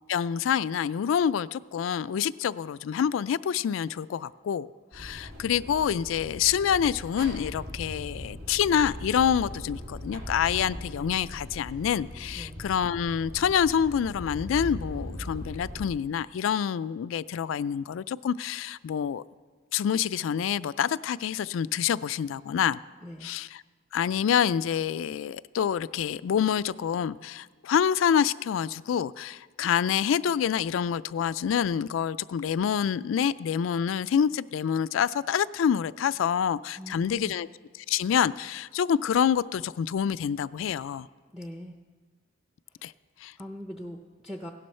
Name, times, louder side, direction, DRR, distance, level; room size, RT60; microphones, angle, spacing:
voice 1, 0.1-4.7 4.9-19.2 19.7-22.8 23.2-23.6 23.9-37.5 37.8-41.1 42.8-42.9 43.2-43.3, left 8 dB, 75° left, 0.3 m, -27 dB
sound 1, 4.9-15.8, equal, 80° right, 2.9 m, -40 dB
voice 2, 36.8-37.3 41.3-41.7 43.4-44.5, equal, 5° right, 0.5 m, -41 dB
16.5 x 11.5 x 4.3 m
head